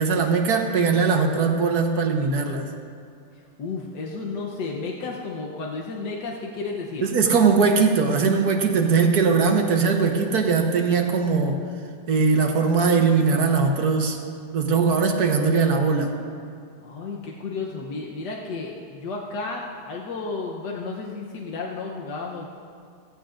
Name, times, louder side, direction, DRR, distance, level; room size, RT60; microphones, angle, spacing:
voice 1, 0.0-2.7 7.0-11.6 12.1-14.2 14.5-16.1, right 5 dB, 65° right, 3 dB, 1.6 m, -20 dB
voice 2, 3.6-7.1 16.8-22.5, left 3 dB, 85° left, -2 dB, 1.6 m, -32 dB
16.0 x 15.5 x 2.6 m, 2.3 s
omnidirectional pair, 1.8 m